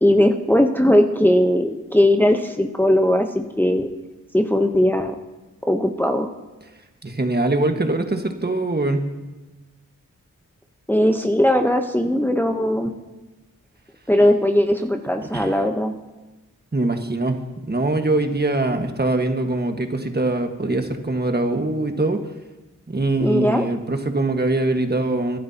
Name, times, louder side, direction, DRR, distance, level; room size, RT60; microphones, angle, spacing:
voice 1, 0.0-3.9 4.3-5.2 5.7-6.3 10.9-12.9 14.1-15.9 23.2-23.6, left 1 dB, 5° left, 4 dB, 1.0 m, -19 dB
voice 2, 7.0-9.1 15.2-15.5 16.7-17.4 17.7-22.2 22.9-25.4, right 2 dB, 30° right, 5 dB, 1.6 m, -22 dB
22.5 x 11.5 x 2.9 m, 1.1 s
cardioid pair, 40°, 32 cm